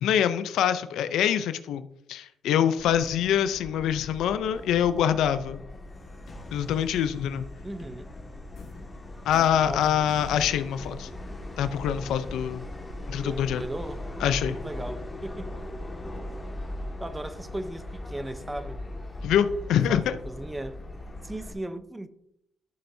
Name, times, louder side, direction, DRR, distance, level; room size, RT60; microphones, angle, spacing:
voice 1, 0.0-1.8 2.1-5.6 6.5-7.4 9.3-11.1 11.6-12.6 13.1-13.6 14.2-14.6 19.2-20.2, left 9 dB, 80° left, 0.5 m, -25 dB
Subway metro underground, 2.8-21.5, left 1 dB, 20° left, 1.8 m, -39 dB
sound 1, 4.5-5.9 6.3-11.4, left 3 dB, 65° left, 2.0 m, -48 dB
voice 2, 7.6-8.1 9.6-10.1 13.2-15.5 17.0-18.8 19.9-20.8 21.2-22.1, right 1 dB, 15° right, 0.7 m, -37 dB
12.5 x 6.9 x 2.7 m
cardioid pair, 90°, 0 cm